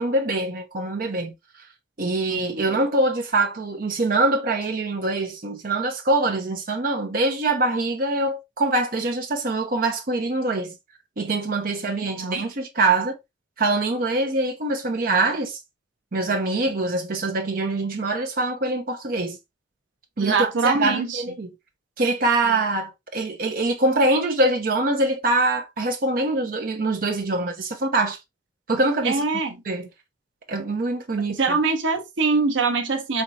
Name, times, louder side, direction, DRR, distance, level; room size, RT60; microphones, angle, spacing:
voice 1, 0.0-1.3 2.0-10.7 11.2-13.2 13.6-15.6 16.1-19.4 20.2-21.5 22.0-28.2 28.7-29.2 29.7-29.9 30.5-31.6, right 2 dB, 50° right, 0.7 m, -24 dB
voice 2, 2.3-2.7 11.8-12.4 16.5-16.6 20.2-21.2 29.0-29.6 31.3-33.2, right 4 dB, 80° right, 0.9 m, -24 dB
4.4 x 3.6 x 2.7 m
head